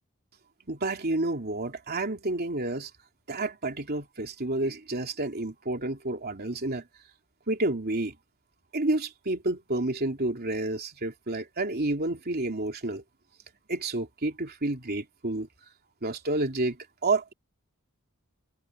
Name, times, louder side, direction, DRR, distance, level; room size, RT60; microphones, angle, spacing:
voice 1, 0.7-2.9 3.3-6.8 7.5-8.1 8.7-13.0 13.7-15.5 16.0-17.3, right 2 dB, 45° right, 3.0 m, -30 dB
head